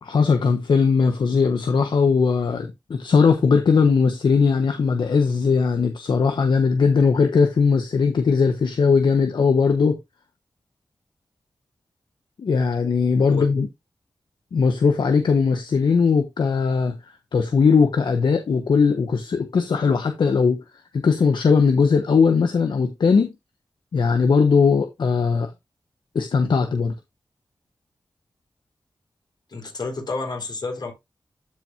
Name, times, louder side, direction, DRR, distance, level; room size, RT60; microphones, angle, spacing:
voice 1, 0.0-10.0 12.4-13.7 14.5-17.0 17.3-20.6 20.9-23.3 23.9-25.5 26.1-26.9, left 5 dB, 80° left, 1.0 m, -19 dB
voice 2, 13.3-13.6 29.5-30.9, left 3 dB, 65° left, 3.6 m, -30 dB
13.0 x 4.6 x 2.6 m
cardioid pair, 65°, 8 cm